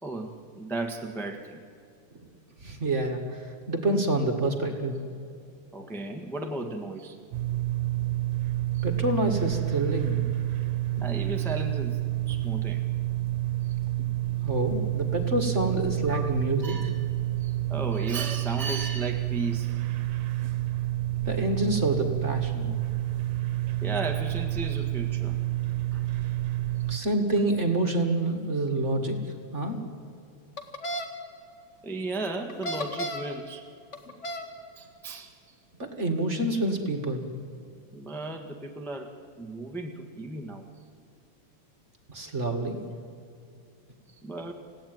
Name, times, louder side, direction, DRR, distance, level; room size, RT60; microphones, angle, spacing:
voice 1, 0.0-1.6 5.7-7.2 8.7-8.8 11.0-12.8 13.6-13.7 16.0-16.3 16.6-17.1 17.4-19.8 23.8-25.4 25.9-26.1 30.9-31.0 31.8-33.6 34.8-35.3 37.9-39.1 39.4-40.7 44.2-44.5, right 2 dB, ahead, 3 dB, 0.6 m, -35 dB
voice 2, 2.6-5.0 8.8-10.2 14.4-16.7 21.2-22.7 26.9-29.2 29.5-29.8 35.8-37.3 42.1-42.8, right 1 dB, 30° right, 4 dB, 1.8 m, -27 dB
sound 1, 7.3-27.0, right 15 dB, 75° right, 2.3 m, -29 dB
sound 2, 30.6-31.1 32.5-33.3 33.9-34.5, equal, 30° left, 1.6 m, -33 dB
29.0 x 17.0 x 9.3 m, 2.4 s
omnidirectional pair, 3.3 m